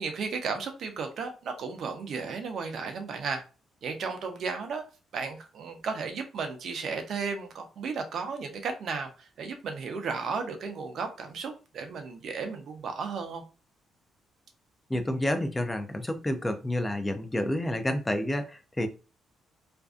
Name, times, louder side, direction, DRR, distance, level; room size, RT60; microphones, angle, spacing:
voice 1, 0.0-3.4 3.8-4.8 5.1-13.4, right 5 dB, 65° right, 0.6 m, -34 dB
voice 2, 14.9-18.9, left 1 dB, 15° left, 0.4 m, -29 dB
2.5 x 2.3 x 2.4 m
cardioid pair, 90°, 0 cm